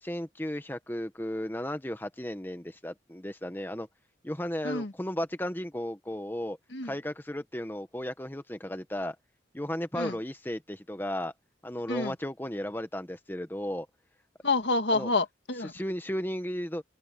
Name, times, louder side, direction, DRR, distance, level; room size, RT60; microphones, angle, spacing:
voice 1, 0.0-3.9 4.2-6.6 6.8-9.1 9.5-11.3 11.6-13.9 14.9-15.1 15.7-16.8, equal, 10° left, 1.1 m, -34 dB
voice 2, 14.4-15.7, left 3 dB, 75° left, 1.6 m, -28 dB
head